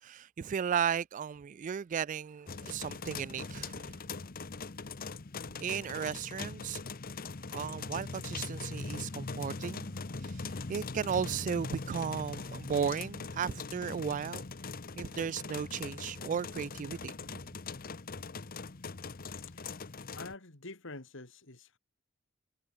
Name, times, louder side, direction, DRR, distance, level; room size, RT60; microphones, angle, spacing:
voice 1, 0.0-4.0 5.6-6.8 7.5-14.4 15.0-17.3, right 7 dB, 40° right, 0.3 m, -35 dB
sound 1, 2.5-20.3, left 4 dB, 45° left, 0.9 m, -41 dB
voice 2, 20.1-21.8, left 3 dB, 65° left, 2.8 m, -47 dB
head